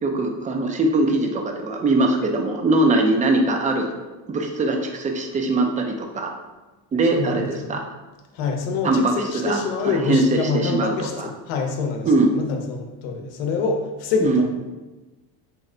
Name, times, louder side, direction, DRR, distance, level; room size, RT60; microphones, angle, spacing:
voice 1, 0.0-3.9 4.3-6.3 6.9-7.8 8.8-11.3 12.1-12.3 14.2-14.5, right 2 dB, 20° right, 4 dB, 0.3 m, -21 dB
voice 2, 7.1-7.8 8.3-14.5, left 4 dB, 85° left, 3 dB, 0.8 m, -26 dB
4.2 x 2.1 x 3.7 m, 1.2 s
supercardioid pair, 100°, 47 cm